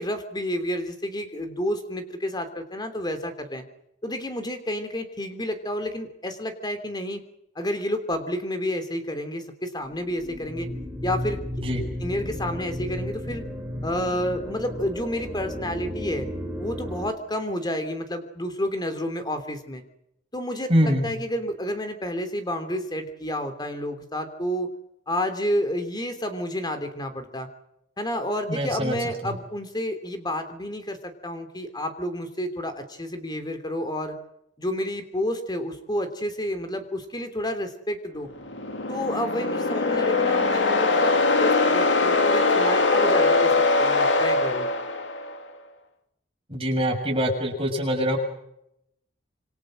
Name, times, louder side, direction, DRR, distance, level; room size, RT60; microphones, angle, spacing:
voice 1, 0.0-3.6 4.0-7.2 7.5-10.7 11.0-11.4 12.0-13.4 13.8-16.3 16.6-19.8 20.3-24.7 25.1-27.5 28.0-34.2 34.6-38.3 38.9-44.7, left 1 dB, 25° left, 8 dB, 3.2 m, -30 dB
sound 1, 9.8-17.1, equal, 10° right, 5.1 m, -34 dB
voice 2, 20.7-21.1 28.5-29.0 29.2-29.3 46.5-48.2, equal, 30° right, 1 dB, 6.7 m, -24 dB
sound 2, 38.4-45.4, left 3 dB, 80° left, 2.5 m, -22 dB
27.0 x 25.0 x 6.5 m, 0.80 s
head